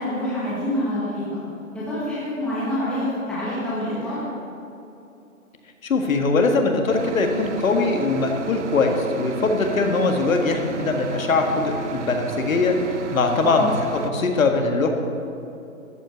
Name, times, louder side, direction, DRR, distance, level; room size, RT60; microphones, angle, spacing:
voice 1, 0.0-1.4 1.7-4.2 13.4-13.7, left 1 dB, ahead, -10 dB, 1.7 m, -26 dB
voice 2, 5.8-12.8 13.1-14.9, left 3 dB, 70° left, 4 dB, 1.8 m, -21 dB
sound 1, 6.9-14.1, right 6 dB, 55° right, 0.9 m, -33 dB
13.0 x 5.8 x 9.0 m, 2.7 s
hypercardioid pair, 175°, 42 cm